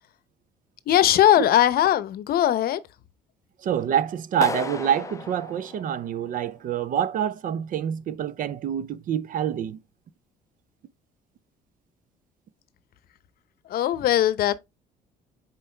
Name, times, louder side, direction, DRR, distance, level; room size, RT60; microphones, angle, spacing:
voice 1, 0.9-2.8 13.6-14.6, left 12 dB, 65° left, 0.7 m, -20 dB
voice 2, 3.6-9.8, right 9 dB, 55° right, 0.5 m, -26 dB
Clapping, 4.4-6.5, left 4 dB, 20° left, 0.4 m, -35 dB
7.1 x 4.5 x 3.3 m
cardioid pair, 110°, 17 cm